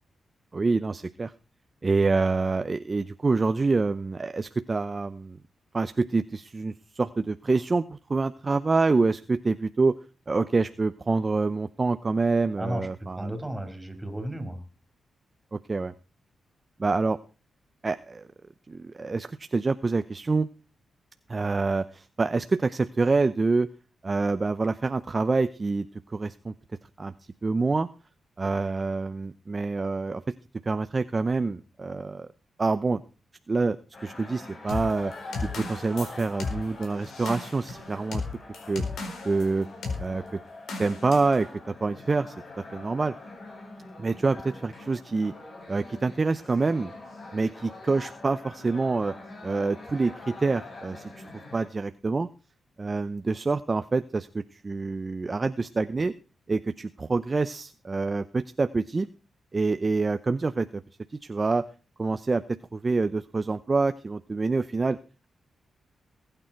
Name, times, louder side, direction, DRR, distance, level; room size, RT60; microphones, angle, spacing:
voice 1, 0.5-1.3 1.8-5.4 5.7-10.0 10.3-13.3 15.5-15.9 16.8-17.2 17.8-18.3 18.7-20.5 21.3-23.7 24.0-26.5 27.0-27.1 27.4-27.9 28.4-30.3 30.7-32.3 32.6-33.0 33.5-33.8 34.0-35.1 35.4-38.2 38.7-38.8 39.2-39.7 40.0-40.2 40.8-42.3 42.7-43.1 44.0-45.3 45.7-46.9 47.3-49.1 49.4-51.3 51.5-52.3 52.8-56.1 56.5-59.1 59.5-60.8 61.2-61.6 62.0-65.0, right 3 dB, 30° right, 11 dB, 0.6 m, -26 dB
voice 2, 12.6-14.6, right 1 dB, 10° right, 5 dB, 4.4 m, -34 dB
sound 1, 33.9-51.7, left 2 dB, 45° left, 6.1 m, -44 dB
sound 2, 34.7-39.5 39.8-40.0 40.7-41.4, left 4 dB, 80° left, 4.3 m, -34 dB
19.5 x 9.0 x 4.5 m, 0.34 s
cardioid pair, 90°, 0 cm